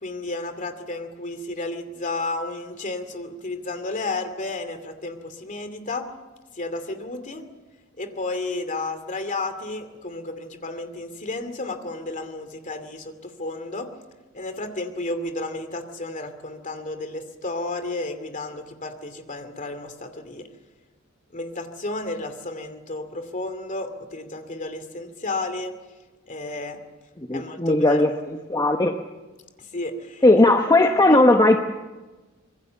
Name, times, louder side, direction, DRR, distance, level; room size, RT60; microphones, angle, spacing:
voice 1, 0.0-6.0 6.6-7.4 8.0-13.9 14.3-20.5 21.3-25.7 26.3-26.8 27.3-28.0 29.7-30.2 31.1-31.2, left 2 dB, 40° left, 8 dB, 2.6 m, -32 dB
voice 2, 27.3-28.9 30.2-31.6, left 2 dB, 20° left, 4 dB, 1.0 m, -17 dB
25.5 x 22.0 x 7.0 m, 1.2 s
head